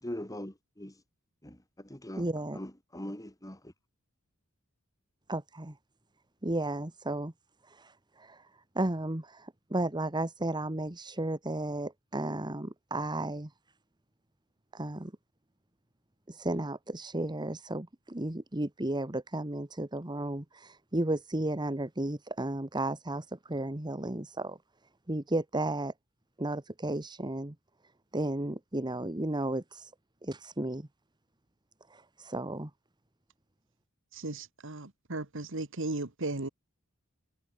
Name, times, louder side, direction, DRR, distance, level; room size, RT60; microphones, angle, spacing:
voice 1, 0.0-0.9 1.4-2.2 2.5-3.7, left 1 dB, 15° left, 3.5 m, -41 dB
voice 2, 2.2-2.6 5.3-5.8 6.4-7.3 7.6-8.5 8.7-13.5 14.7-15.1 16.3-24.6 25.1-25.9 26.4-27.5 28.1-29.9 30.2-30.9 31.9-32.7, right 1 dB, 20° right, 1.4 m, -34 dB
voice 3, 34.1-36.5, right 2 dB, 65° right, 2.0 m, -36 dB
head